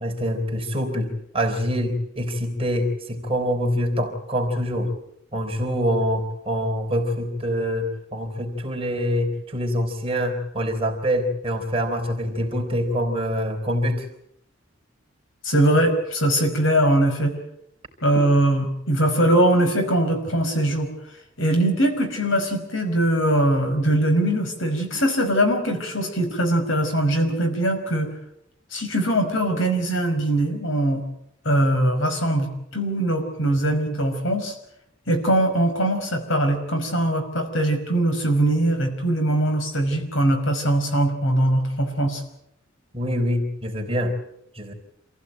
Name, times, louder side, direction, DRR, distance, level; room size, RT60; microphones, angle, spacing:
voice 1, 0.0-4.9 5.3-14.1 42.9-44.2 44.6-44.7, equal, 30° right, 3 dB, 4.2 m, -25 dB
voice 2, 15.4-17.4 18.0-20.9 21.4-28.1 28.7-31.0 31.5-34.5 35.1-42.2, right 1 dB, 65° left, 6 dB, 5.4 m, -21 dB
27.5 x 16.0 x 9.1 m, 0.77 s
head